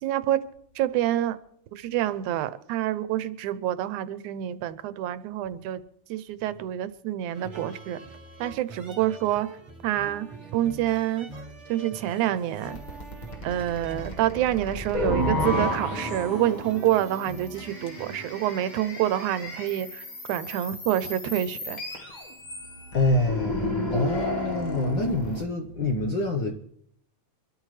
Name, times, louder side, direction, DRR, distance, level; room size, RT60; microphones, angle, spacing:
voice 1, 0.0-1.4 1.7-5.8 6.1-8.0 8.4-9.5 9.8-11.3 11.7-12.8 13.4-21.8, right 12 dB, 80° right, 14 dB, 2.1 m, -27 dB
sound 1, 7.3-18.3, right 3 dB, 25° right, 1.8 m, -44 dB
sound 2, 12.7-25.4, left 1 dB, 40° left, 0.6 m, -32 dB
voice 2, 22.9-26.5, left 2 dB, 60° left, 2 dB, 1.2 m, -26 dB
25.0 x 13.0 x 3.2 m, 0.67 s
omnidirectional pair, 3.4 m